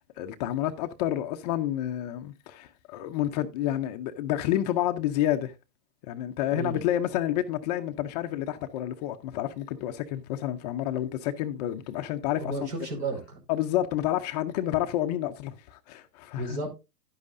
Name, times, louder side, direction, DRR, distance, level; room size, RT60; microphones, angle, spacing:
voice 1, 0.2-5.5 6.0-12.7 13.5-16.6, left 12 dB, 25° left, 0.5 m, -29 dB
voice 2, 6.5-6.8 12.4-13.4 16.4-16.7, right 2 dB, 70° right, 5.1 m, -33 dB
11.0 x 9.5 x 2.5 m
hypercardioid pair, 125°, 49 cm